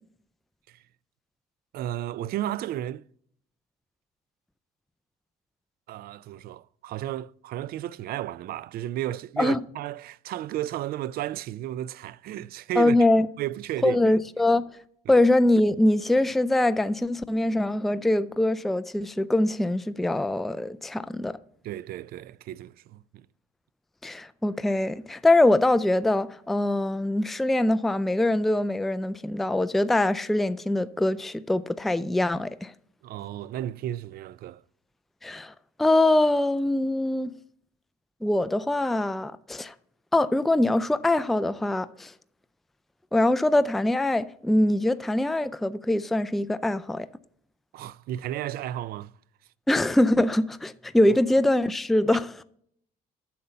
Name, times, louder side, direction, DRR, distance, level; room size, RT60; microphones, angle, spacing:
voice 1, 1.7-3.0 5.9-13.0 13.4-14.1 15.1-15.2 21.6-23.3 33.0-34.6 47.7-49.1 51.1-51.2, right 13 dB, 65° right, 0.4 m, -33 dB
voice 2, 12.8-13.3 13.8-14.6 15.1-21.4 24.0-32.7 35.2-35.5 35.8-37.3 38.2-39.7 40.1-42.1 43.1-47.1 49.7-52.3, left 1 dB, ahead, 0.3 m, -23 dB
8.6 x 6.9 x 5.5 m
cardioid pair, 110°, 17 cm